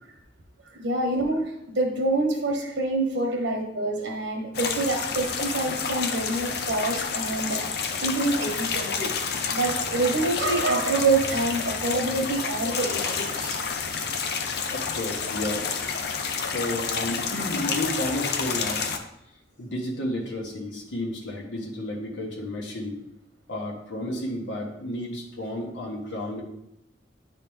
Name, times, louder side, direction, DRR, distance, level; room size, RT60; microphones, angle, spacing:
voice 1, 0.7-9.1 9.5-13.6 16.2-16.3, right 2 dB, 85° right, 2 dB, 1.2 m, -26 dB
sound 1, 4.5-19.0, left 5 dB, 60° left, 0.6 m, -29 dB
voice 2, 14.7-15.9 16.4-18.9 19.6-23.0 23.5-26.4, left 1 dB, 90° left, -1 dB, 1.3 m, -32 dB
9.3 x 4.1 x 3.5 m, 0.80 s
head